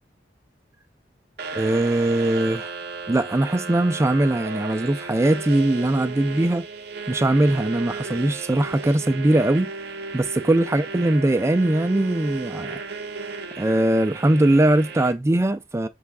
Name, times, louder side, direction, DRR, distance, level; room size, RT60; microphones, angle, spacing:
sound 1, 1.4-15.1, right 4 dB, 60° right, 0.6 m, -34 dB
voice 1, 1.5-2.7 3.1-6.6 7.1-9.7 10.1-12.8 13.6-15.9, right 1 dB, 15° right, 0.3 m, -21 dB
5.6 x 3.4 x 2.2 m
head